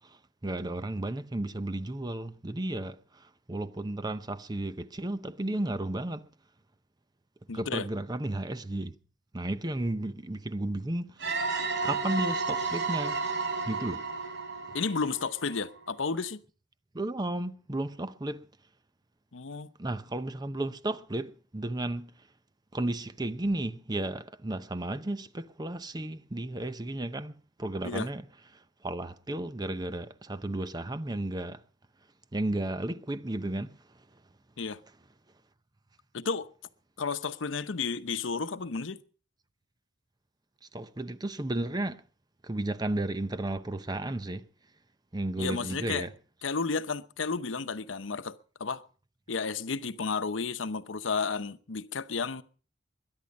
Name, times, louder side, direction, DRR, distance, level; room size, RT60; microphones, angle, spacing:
voice 1, 0.4-3.0 3.5-6.3 7.5-8.9 9.3-11.1 11.8-13.2 13.7-14.0 16.9-18.4 19.8-22.1 22.7-28.2 28.8-31.6 32.3-33.7 40.7-42.0 42.5-44.4 45.1-46.1, right 1 dB, 20° right, 0.7 m, -33 dB
voice 2, 7.5-7.9 14.7-16.4 19.3-19.7 27.8-28.1 34.6-34.8 36.1-36.5 37.0-39.0 45.4-46.1 46.4-48.8 49.3-52.4, left 4 dB, 85° left, 0.8 m, -32 dB
sound 1, 11.2-15.8, right 4 dB, 70° right, 3.2 m, -32 dB
22.0 x 10.5 x 5.2 m
head